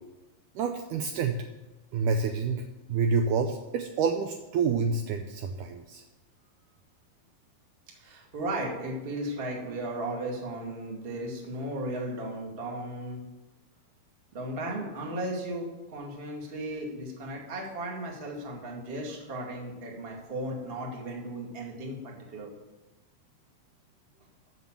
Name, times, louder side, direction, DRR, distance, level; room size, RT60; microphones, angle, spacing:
voice 1, 0.6-1.4 1.9-6.0, right 5 dB, 90° right, 5 dB, 1.8 m, -28 dB
voice 2, 8.0-13.2 14.3-22.5, right 1 dB, 30° right, -1 dB, 1.1 m, -35 dB
14.0 x 5.7 x 7.3 m, 1.1 s
omnidirectional pair, 4.4 m